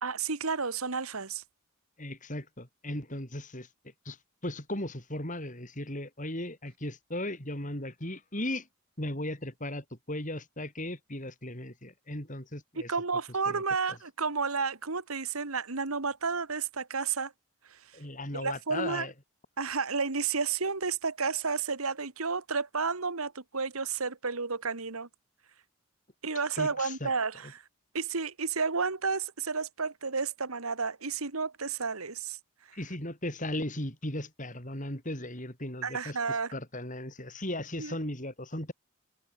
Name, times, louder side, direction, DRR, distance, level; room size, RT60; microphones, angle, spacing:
voice 1, 0.0-1.4 12.8-17.3 17.6-17.9 18.3-19.1 19.6-25.1 26.2-27.6 27.9-32.4 32.7-32.8 35.8-36.5 37.8-38.0, right 5 dB, 90° right, 2.0 m, -31 dB
voice 2, 2.0-3.7 4.1-4.2 4.4-8.7 9.0-12.9 13.5-13.6 17.9-19.1 26.6-27.1 32.7-38.7, left 1 dB, 35° left, 7.4 m, -37 dB
head